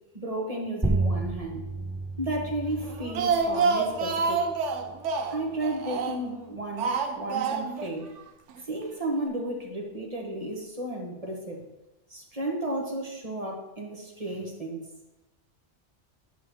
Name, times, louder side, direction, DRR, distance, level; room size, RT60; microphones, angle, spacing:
voice 1, 0.1-1.6 2.2-4.4 5.3-8.1 8.6-11.6 12.1-14.8, right 1 dB, 30° right, -1 dB, 1.3 m, -33 dB
sound 1, 0.8-5.9, right 2 dB, 10° right, 0.3 m, -33 dB
Speech, 2.8-6.4 6.8-7.9 8.2-8.3 8.6-8.7, right 5 dB, 85° right, 1.0 m, -27 dB
9.1 x 3.3 x 6.2 m, 0.99 s
omnidirectional pair, 1.2 m